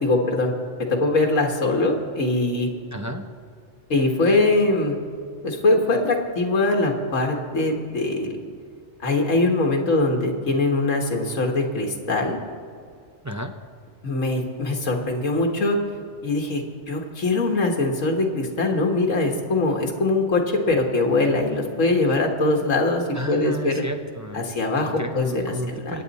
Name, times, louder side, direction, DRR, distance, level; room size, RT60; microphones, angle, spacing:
voice 1, 0.0-0.5 0.8-2.7 3.9-5.0 5.4-8.4 9.0-12.4 14.0-15.8 16.2-23.8 24.3-25.4 25.9-26.0, left 2 dB, 85° left, 1 dB, 1.9 m, -22 dB
voice 2, 2.9-3.2 13.2-13.5 23.1-24.5 24.8-26.0, equal, 20° right, 5 dB, 0.5 m, -32 dB
25.0 x 8.9 x 4.2 m, 2.2 s
omnidirectional pair, 1.3 m